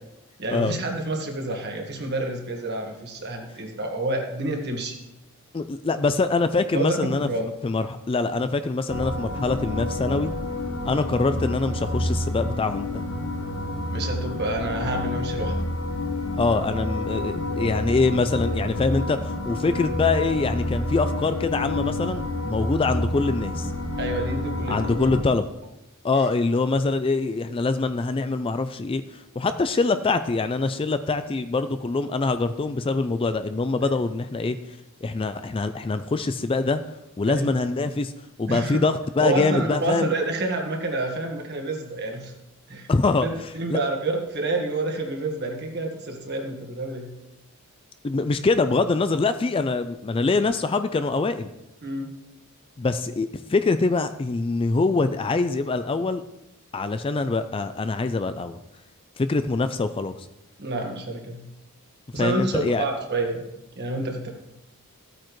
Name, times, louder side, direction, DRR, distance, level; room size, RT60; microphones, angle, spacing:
voice 1, 0.4-5.0 6.7-7.4 13.9-15.6 24.0-25.1 33.8-33.9 37.3-37.5 38.5-38.8 39.2-42.3 42.7-42.9 43.2-47.1 51.8-52.1 60.6-61.4 62.1-63.4 63.8-64.3, right 2 dB, 50° right, 2 dB, 1.6 m, -28 dB
voice 2, 5.5-7.3 7.6-10.3 10.8-13.0 16.4-23.7 24.7-25.5 26.0-34.6 35.0-36.8 37.2-38.1 38.4-40.1 42.9-43.8 48.0-51.5 52.8-56.2 56.7-58.6 59.2-60.1 62.2-62.8, left 3 dB, 25° left, 10 dB, 0.4 m, -24 dB
sound 1, 8.9-25.2, left 1 dB, 85° left, 1.3 m, -29 dB
14.5 x 8.8 x 3.1 m, 0.90 s
head